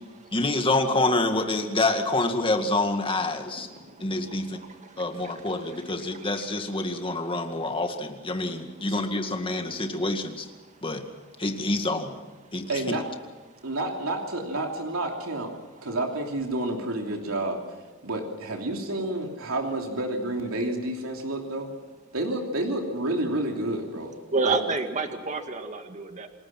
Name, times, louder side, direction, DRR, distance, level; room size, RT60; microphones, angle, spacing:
voice 1, 0.3-3.7 4.0-4.6 5.0-10.3 10.8-11.0 11.4-12.1 12.5-12.9, left 2 dB, 25° left, 5 dB, 2.1 m, -27 dB
voice 2, 3.6-5.4 6.0-6.3 24.3-26.3, right 3 dB, 35° right, 6 dB, 1.9 m, -31 dB
voice 3, 12.7-13.0 13.6-15.5 15.8-17.6 18.0-21.7 22.1-24.1 24.4-24.6, right 1 dB, 85° right, 2 dB, 3.0 m, -29 dB
28.5 x 20.0 x 6.0 m, 1.3 s
head